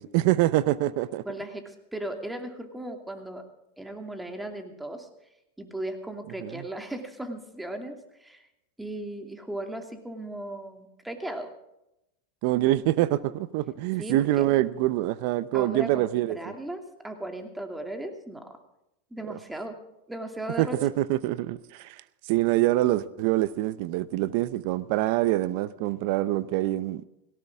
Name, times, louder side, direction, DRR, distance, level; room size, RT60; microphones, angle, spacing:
voice 1, 0.0-1.2 6.4-6.6 12.4-16.4 19.3-19.4 20.6-22.0 22.3-27.1, right 15 dB, 60° right, 0.7 m, -25 dB
voice 2, 1.2-3.4 3.8-5.1 5.6-8.5 8.8-11.5 14.0-14.5 15.5-18.6 19.1-19.8 20.1-20.8, right 1 dB, 5° right, 2.6 m, -37 dB
18.0 x 17.5 x 3.6 m
hypercardioid pair, 105°, 0 cm